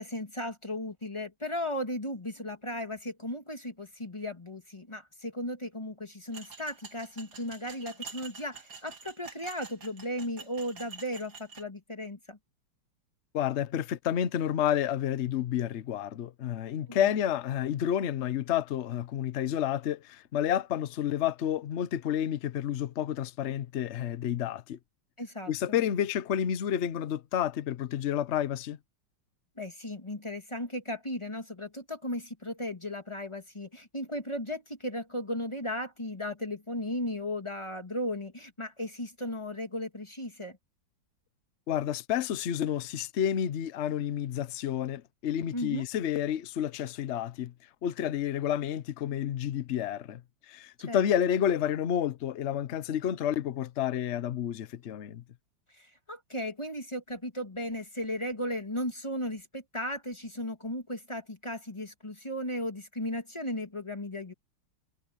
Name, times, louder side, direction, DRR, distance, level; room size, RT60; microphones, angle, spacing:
voice 1, 0.0-12.4 16.9-17.0 25.2-25.8 29.6-40.6 45.5-45.9 50.9-51.0 55.7-64.3, left 1 dB, 15° left, 1.7 m, -36 dB
sound 1, 6.3-11.6, right 5 dB, 65° right, 4.1 m, -47 dB
voice 2, 13.3-24.8 25.5-28.8 41.7-47.5 47.8-50.2 50.5-55.2, left 10 dB, 85° left, 0.6 m, -30 dB
omnidirectional pair, 2.3 m